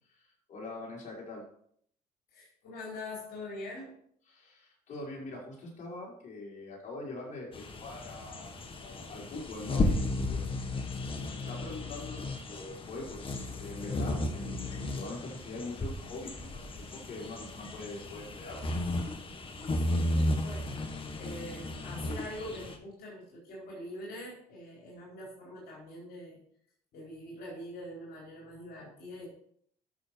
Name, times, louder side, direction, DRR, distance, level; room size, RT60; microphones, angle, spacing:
voice 1, 0.1-1.5 4.3-10.6 11.3-18.6, left 2 dB, 50° left, -4 dB, 5.5 m, -43 dB
voice 2, 2.3-4.0 19.7-26.4 26.9-29.3, left 1 dB, 65° left, -4 dB, 4.5 m, -44 dB
sound 1, 7.5-22.8, left 2 dB, 30° left, 1.7 m, -34 dB
12.0 x 6.8 x 4.7 m, 0.64 s
cardioid pair, 110°, 17 cm